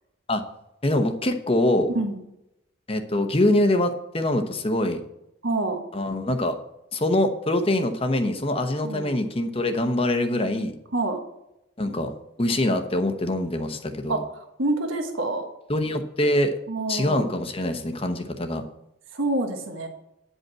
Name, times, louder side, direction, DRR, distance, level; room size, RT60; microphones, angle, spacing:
voice 1, 0.8-1.9 2.9-5.0 5.9-6.5 6.9-10.7 11.8-12.1 12.4-14.2 15.7-16.5 16.9-18.6, left 1 dB, 25° left, 6 dB, 0.9 m, -24 dB
voice 2, 5.4-5.8 8.8-9.1 10.9-11.2 14.1-14.2 14.6-15.5 16.7-17.3 19.1-19.9, right 2 dB, 75° right, 4 dB, 1.3 m, -26 dB
9.9 x 5.4 x 7.5 m, 0.84 s
head